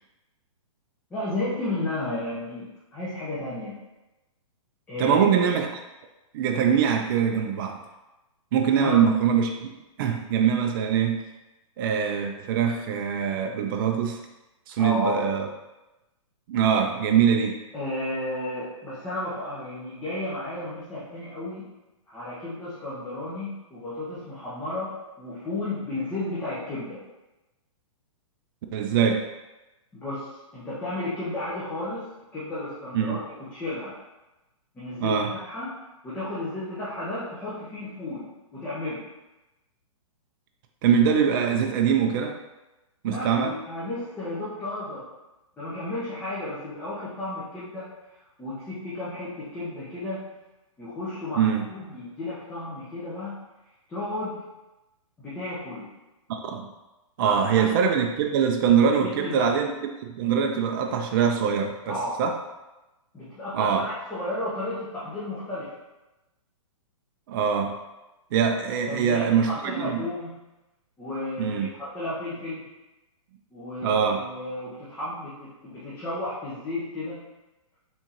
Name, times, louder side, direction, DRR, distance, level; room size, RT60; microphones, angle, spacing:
voice 1, 1.1-3.8 4.9-5.2 8.8-9.0 14.8-15.3 17.7-21.7 22.1-27.0 29.9-32.1 32.3-34.0 34.7-35.8 36.0-39.0 43.1-45.1 45.6-47.9 48.4-50.3 50.8-53.4 53.9-54.4 55.2-55.9 57.2-57.8 59.0-59.6 61.9-62.2 63.1-65.7 68.8-70.4 71.0-72.7 73.5-77.2, left 1 dB, 10° left, -10 dB, 1.0 m, -33 dB
voice 2, 5.0-5.8 6.3-7.8 8.5-9.7 10.0-11.2 11.8-14.2 14.7-15.5 16.5-17.6 28.7-29.3 32.9-33.2 35.0-35.3 40.8-42.4 43.0-43.6 51.4-51.7 56.3-56.7 57.2-59.7 60.0-62.4 63.5-63.9 67.3-67.8 68.3-70.0 71.4-71.7 73.8-74.2, right 7 dB, 40° right, 3 dB, 0.4 m, -23 dB
4.3 x 3.6 x 2.9 m, 1.0 s
hypercardioid pair, 140°, 18 cm